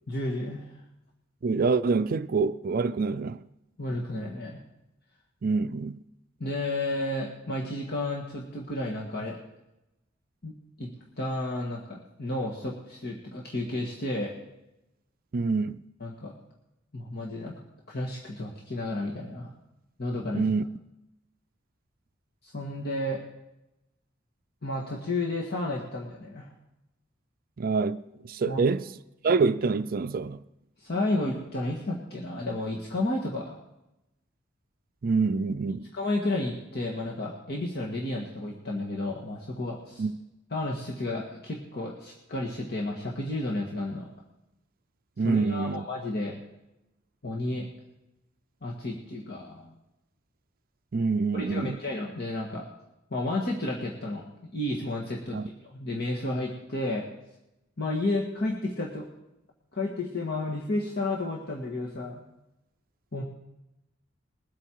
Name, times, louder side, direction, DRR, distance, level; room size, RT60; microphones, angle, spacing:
voice 1, 0.1-0.8 3.8-4.6 6.4-9.4 10.4-10.9 11.2-14.3 16.0-16.3 16.9-17.6 17.9-19.5 20.0-20.4 22.4-23.2 24.6-26.5 28.5-28.6 30.8-33.6 35.9-40.1 40.5-44.1 45.2-46.3 47.2-47.7 48.6-49.7 51.3-52.7 53.1-54.3 54.5-57.1 57.8-59.1 59.7-62.2 63.1-63.2, left 2 dB, 55° left, 1.8 m, -32 dB
voice 2, 1.4-3.4 5.4-6.0 15.3-15.8 20.3-20.6 27.6-28.9 29.2-30.4 35.0-35.9 40.0-40.1 45.2-45.8 50.9-51.8 55.3-55.5, right 4 dB, 50° right, 0.4 m, -26 dB
21.5 x 8.5 x 4.6 m
head